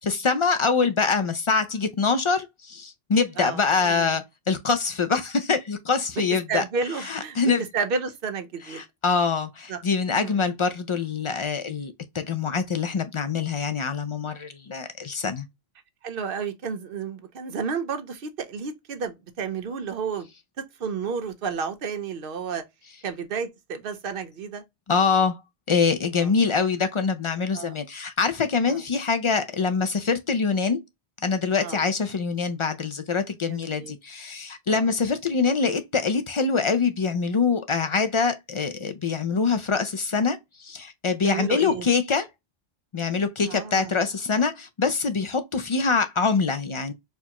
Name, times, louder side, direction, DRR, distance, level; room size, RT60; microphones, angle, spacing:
voice 1, 0.0-6.6 7.0-7.6 8.7-15.5 24.9-25.4 25.7-30.8 31.2-42.3 42.9-46.9, left 5 dB, 50° left, 0.3 m, -24 dB
voice 2, 3.4-4.2 6.5-7.4 7.7-8.8 9.7-9.8 10.2-10.4 16.0-20.3 20.8-22.6 23.0-24.6 26.1-26.3 27.5-27.8 28.6-28.8 31.6-31.8 33.5-33.9 34.7-34.8 41.2-41.9 43.4-43.9, right 5 dB, 65° right, 0.8 m, -31 dB
4.4 x 2.3 x 2.9 m
omnidirectional pair, 1.0 m